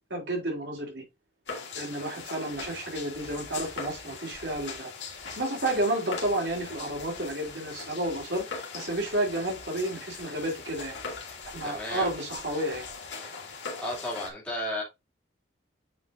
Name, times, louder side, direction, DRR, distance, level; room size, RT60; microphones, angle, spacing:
voice 1, 0.1-1.0 1.7-4.9 5.4-8.4 8.7-11.0 11.5-12.9, right 1 dB, 65° right, 4.1 m, -31 dB
sound 1, 1.5-14.3, left 4 dB, 65° left, 3.2 m, -40 dB
voice 2, 11.6-12.1 13.8-14.8, left 1 dB, 5° left, 2.9 m, -33 dB
9.1 x 5.5 x 2.7 m
head